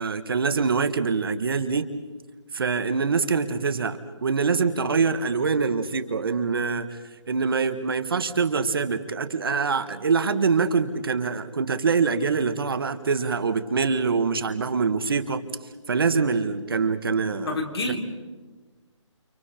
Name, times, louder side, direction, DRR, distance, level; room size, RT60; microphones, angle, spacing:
voice 1, 0.0-1.9 2.5-7.0 7.3-15.4 15.9-17.6, right 5 dB, 45° right, 9 dB, 1.5 m, -24 dB
voice 2, 17.5-18.0, left 2 dB, 55° left, 3 dB, 3.8 m, -27 dB
29.5 x 29.0 x 4.4 m, 1.3 s
hypercardioid pair, 175°, 16 cm